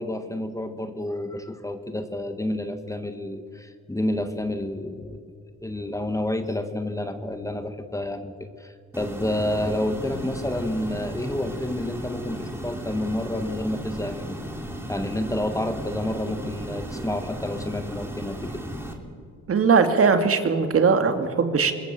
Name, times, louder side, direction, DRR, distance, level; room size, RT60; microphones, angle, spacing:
voice 1, 0.0-5.3 5.6-14.4 14.9-18.6, left 1 dB, 10° left, 8 dB, 1.6 m, -29 dB
sound 1, 8.9-18.9, right 1 dB, 10° right, 3.6 m, -35 dB
voice 2, 19.5-21.7, right 5 dB, 50° right, 7 dB, 2.3 m, -20 dB
25.5 x 20.0 x 7.5 m, 2.2 s
cardioid pair, 90°, 30 cm